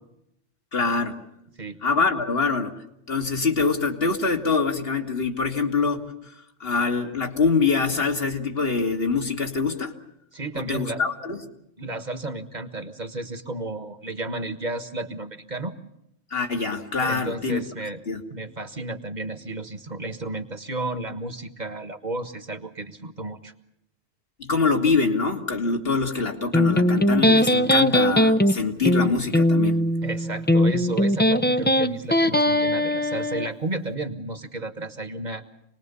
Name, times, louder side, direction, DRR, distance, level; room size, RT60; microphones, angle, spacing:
voice 1, 0.7-1.2 1.8-2.7 3.1-6.3 6.6-9.9 10.7-11.4 16.3-17.6 18.1-18.2 24.4-29.8, left 4 dB, 55° left, 3 dB, 2.2 m, -24 dB
voice 2, 10.3-11.0 11.8-15.7 17.0-18.0 18.3-23.5 30.0-35.4, right 2 dB, 40° right, 9 dB, 1.6 m, -32 dB
Electric guitar, 26.5-33.5, left 1 dB, 10° left, 0.6 m, -20 dB
27.0 x 20.0 x 6.9 m, 0.79 s
omnidirectional pair, 1.2 m